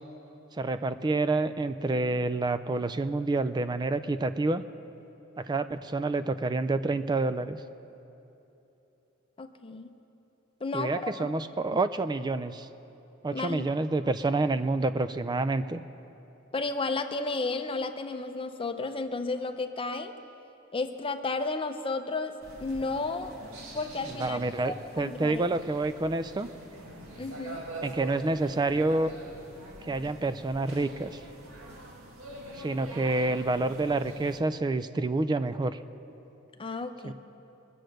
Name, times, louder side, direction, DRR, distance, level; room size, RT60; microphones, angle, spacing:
voice 1, 0.5-4.6 5.4-7.6 10.7-12.7 13.2-15.8 24.1-26.5 27.8-29.1 29.8-31.2 32.6-35.8 37.0-37.1, right 2 dB, 20° right, 12 dB, 0.3 m, -28 dB
voice 2, 9.4-9.9 10.6-11.3 13.3-13.6 16.5-20.1 20.7-22.3 22.6-23.3 23.7-24.4 24.6-25.4 27.2-27.7 36.6-37.1, left 3 dB, 25° left, 7 dB, 0.6 m, -32 dB
sound 1, 22.4-34.4, right 2 dB, 85° right, 1.8 m, -45 dB
21.5 x 7.8 x 6.5 m, 3.0 s
head